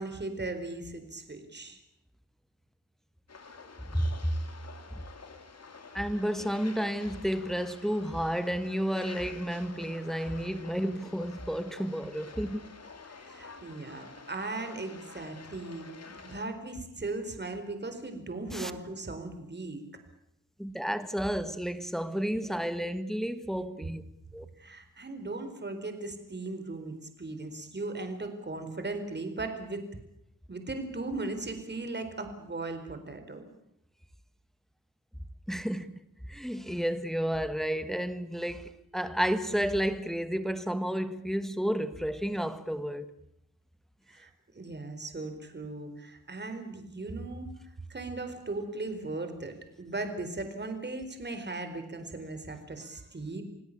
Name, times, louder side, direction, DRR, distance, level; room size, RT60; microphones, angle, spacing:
voice 1, 0.0-1.8 13.2-19.8 24.3-29.8 30.5-33.5 44.1-47.5 47.9-53.4, right 2 dB, 35° right, 4.3 m, -38 dB
sound 1, 3.3-16.5, left 4 dB, 50° left, 2.9 m, -49 dB
voice 2, 5.9-12.7 18.5-18.7 20.6-24.0 24.3-24.4 35.5-36.0 36.3-43.1, equal, ahead, 1.5 m, -31 dB
28.5 x 18.0 x 8.6 m
wide cardioid pair, 95°, 32 cm